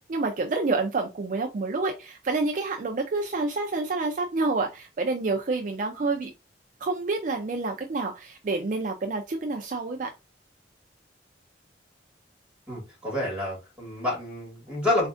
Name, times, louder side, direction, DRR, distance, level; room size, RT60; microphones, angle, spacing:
voice 1, 0.0-6.3 6.8-10.1, right 3 dB, 45° right, 0.4 m, -28 dB
voice 2, 12.7-15.1, left 1 dB, 5° right, 1.8 m, -28 dB
4.1 x 2.4 x 2.5 m
head